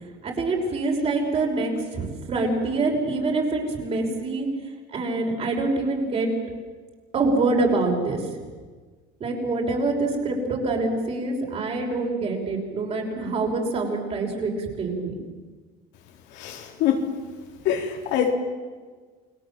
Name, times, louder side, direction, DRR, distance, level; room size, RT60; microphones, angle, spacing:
voice 1, 0.2-4.5 4.9-6.3 7.1-8.2 9.2-15.2, right 3 dB, 35° right, 1 dB, 5.9 m, -25 dB
voice 2, 16.3-17.1 17.6-18.3, left 9 dB, 75° left, 2 dB, 4.1 m, -24 dB
29.5 x 21.5 x 7.7 m, 1.4 s
cardioid pair, 160°, 18 cm